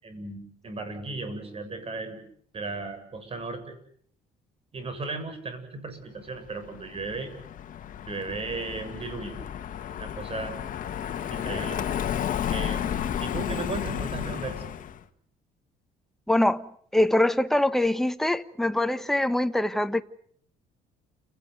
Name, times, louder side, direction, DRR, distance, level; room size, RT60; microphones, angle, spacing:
voice 1, 0.0-2.2 2.5-3.8 4.7-7.3 8.1-9.4 9.9-10.5 11.0-11.8 12.5-14.6, right 3 dB, 35° right, 7.7 m, -36 dB
Car passing by, 6.5-15.0, left 9 dB, 50° left, 1.9 m, -32 dB
voice 2, 16.3-20.0, left 1 dB, ahead, 1.3 m, -24 dB
30.0 x 18.0 x 9.5 m
cardioid pair, 110°, 17 cm